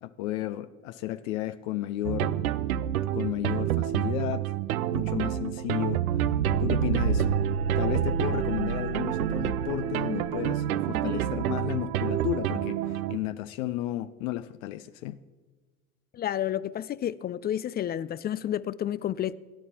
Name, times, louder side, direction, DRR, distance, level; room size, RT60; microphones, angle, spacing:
voice 1, 0.0-2.4 2.9-4.5 4.9-6.1 6.6-7.3 7.8-15.2, left 14 dB, 65° left, 0.6 m, -33 dB
sound 1, 2.0-13.2, right 10 dB, 80° right, 0.6 m, -28 dB
voice 2, 16.1-19.3, left 11 dB, 25° left, 0.3 m, -30 dB
23.5 x 10.5 x 2.9 m
hypercardioid pair, 70°, 42 cm